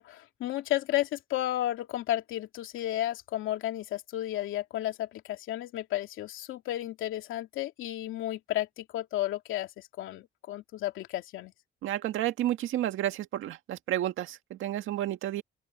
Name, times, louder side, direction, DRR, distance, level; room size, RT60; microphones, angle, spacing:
voice 1, 0.0-11.5, left 14 dB, 85° left, 2.6 m, -33 dB
voice 2, 11.8-15.4, right 13 dB, 85° right, 1.9 m, -31 dB
open air
cardioid pair, 90°, 20 cm